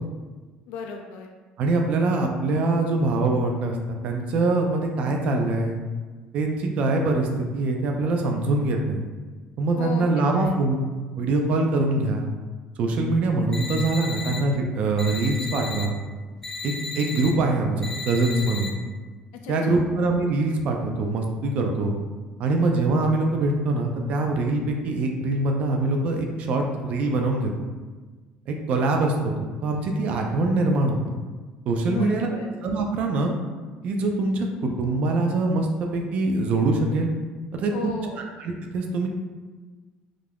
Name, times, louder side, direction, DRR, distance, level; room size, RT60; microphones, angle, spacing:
voice 1, 0.7-1.3 9.8-10.6 19.4-19.9 31.9-32.5 37.7-38.2, left 5 dB, 85° left, 2 dB, 0.3 m, -35 dB
voice 2, 1.6-5.8 6.3-9.0 9.6-10.8 11.2-12.3 12.8-15.9 16.6-18.7 19.5-21.9 22.4-27.5 28.5-29.3 29.6-31.0 31.7-32.3 32.6-33.3 33.8-37.1 37.5-37.7 38.4-39.1, right 2 dB, 50° right, 2 dB, 0.4 m, -23 dB
sound 1, 13.5-14.4 15.0-15.8 16.4-17.3 17.8-18.7, left 3 dB, 15° left, 0.6 m, -34 dB
2.4 x 2.2 x 3.3 m, 1.3 s
cardioid pair, 145°, 3 cm